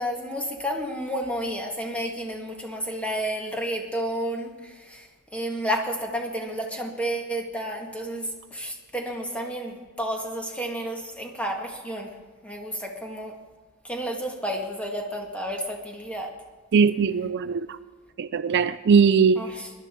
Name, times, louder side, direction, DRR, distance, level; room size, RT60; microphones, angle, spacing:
voice 1, 0.0-5.1 5.3-12.1 12.4-13.3 13.8-16.3 19.3-19.7, equal, 5° left, 1.8 m, -31 dB
voice 2, 16.7-17.7 18.2-19.4, right 6 dB, 55° right, 0.4 m, -20 dB
20.0 x 11.5 x 4.5 m
head